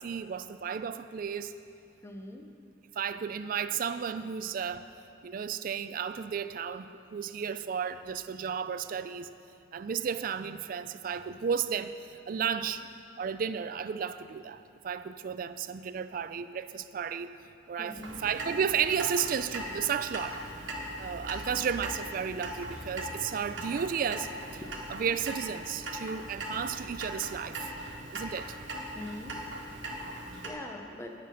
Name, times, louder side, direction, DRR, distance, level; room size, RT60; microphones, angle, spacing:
voice 1, 0.0-1.5 3.0-4.9 5.2-9.3 9.7-12.8 13.2-17.3 17.7-20.4 21.0-24.6 24.9-27.7 28.1-28.6, right 7 dB, 45° right, 12 dB, 0.3 m, -33 dB
voice 2, 2.0-2.5 12.6-12.7 17.8-18.2 24.6-24.7 28.9-29.4 30.4-31.1, left 1 dB, 15° left, 3 dB, 0.7 m, -42 dB
Clock, 17.9-30.5, right 1 dB, 75° right, 1.3 m, -40 dB
16.0 x 5.8 x 5.1 m, 2.6 s
head